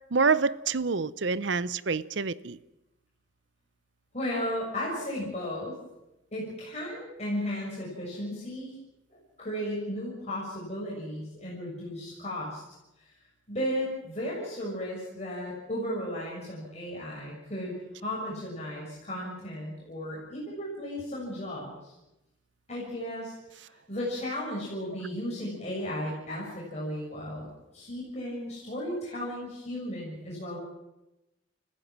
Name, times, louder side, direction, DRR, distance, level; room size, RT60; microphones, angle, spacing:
voice 1, 0.1-2.6, right 4 dB, 65° right, 0.7 m, -27 dB
voice 2, 4.1-5.8 6.3-8.8 9.1-12.6 13.0-13.1 13.5-21.9 22.7-23.3 23.9-30.6, equal, 35° left, 6.4 m, -35 dB
29.5 x 15.5 x 7.5 m
head